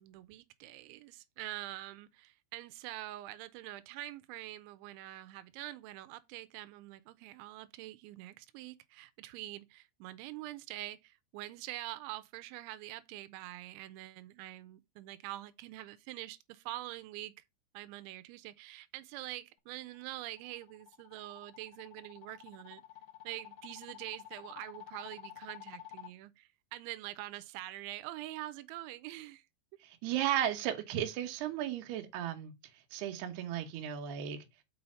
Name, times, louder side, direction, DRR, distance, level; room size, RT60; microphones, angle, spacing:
voice 1, 0.0-17.4 17.7-22.8 23.2-29.5, right 16 dB, 90° right, 3.0 m, -45 dB
sound 1, 19.9-26.1, left 13 dB, 80° left, 1.8 m, -51 dB
voice 2, 29.8-32.5 32.9-34.5, right 11 dB, 70° right, 3.0 m, -35 dB
6.3 x 5.5 x 5.5 m
omnidirectional pair, 5.2 m